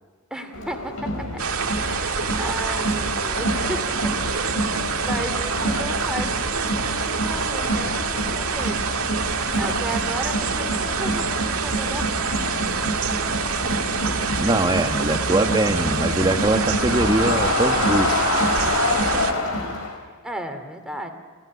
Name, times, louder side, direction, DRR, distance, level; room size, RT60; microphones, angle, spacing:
voice 1, 0.3-2.1 2.4-4.5 4.9-8.9 9.3-12.3 20.2-21.1, equal, 5° right, 5 dB, 2.5 m, -34 dB
Crowd, 0.5-20.0, left 1 dB, 75° left, 4.6 m, -27 dB
sound 1, 1.4-19.3, right 6 dB, 85° right, 1.9 m, -26 dB
voice 2, 14.4-18.1, right 2 dB, 20° right, 7 dB, 1.2 m, -22 dB
29.0 x 17.5 x 9.4 m, 1.5 s
head